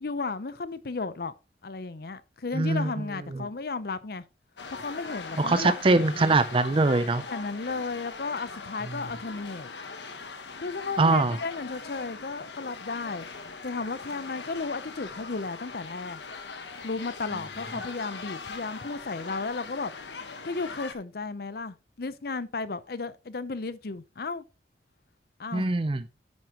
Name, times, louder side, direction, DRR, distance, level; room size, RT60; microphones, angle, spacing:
voice 1, 0.0-1.3 1.6-4.2 4.7-6.4 7.3-9.7 10.6-13.3 13.6-16.2 16.8-19.9 20.4-24.4 25.4-25.7, left 3 dB, 60° left, 0.7 m, -34 dB
voice 2, 2.5-2.9 3.3-3.5 5.4-7.2 11.0-11.4 25.5-26.0, right 3 dB, 30° right, 0.5 m, -23 dB
sound 1, 4.6-20.9, left 4 dB, 85° left, 1.3 m, -41 dB
9.7 x 9.3 x 3.0 m
head